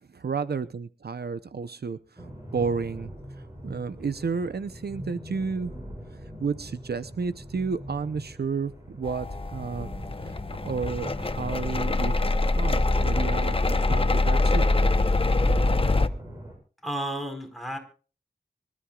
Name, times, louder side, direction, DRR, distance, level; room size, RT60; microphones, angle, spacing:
voice 1, 0.1-2.2 2.5-3.1 3.6-5.7 6.4-9.3 9.5-9.9 10.2-10.4 10.6-14.7, right 5 dB, 75° right, 13 dB, 0.7 m, -31 dB
sound 1, 2.2-16.5, equal, 20° right, 8.0 m, -42 dB
sound 2, 9.1-16.1, left 2 dB, 35° left, 0.9 m, -24 dB
voice 2, 16.8-17.8, right 1 dB, ahead, 5 dB, 4.5 m, -32 dB
25.0 x 13.5 x 2.4 m, 0.38 s
wide cardioid pair, 85°, 17 cm